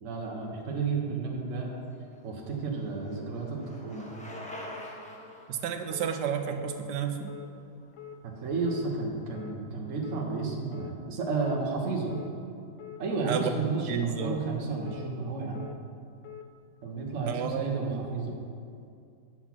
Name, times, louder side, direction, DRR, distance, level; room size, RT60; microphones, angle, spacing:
voice 1, 0.0-1.7 2.2-4.1 8.2-12.2 13.0-15.7 16.8-18.4, right 4 dB, 50° right, 0 dB, 1.4 m, -32 dB
Bicycle, 1.9-7.9, left 1 dB, 5° left, 0.9 m, -46 dB
voice 2, 5.5-7.4 13.3-13.5 13.9-14.4 17.3-18.1, right 7 dB, 85° right, 7 dB, 1.3 m, -31 dB
sound 1, 5.9-6.1 6.6-6.8 7.3-7.5 7.9-8.2 8.7-8.9 9.3-9.6 10.0-10.2 10.7-10.9 11.4-11.6 12.1-12.3 12.8-13.0 13.5-13.7 14.2-14.4 14.9-15.1 15.5-15.8 16.2-16.5, left 10 dB, 70° left, 0.7 m, -44 dB
7.7 x 6.0 x 5.9 m, 2.4 s
omnidirectional pair, 1.8 m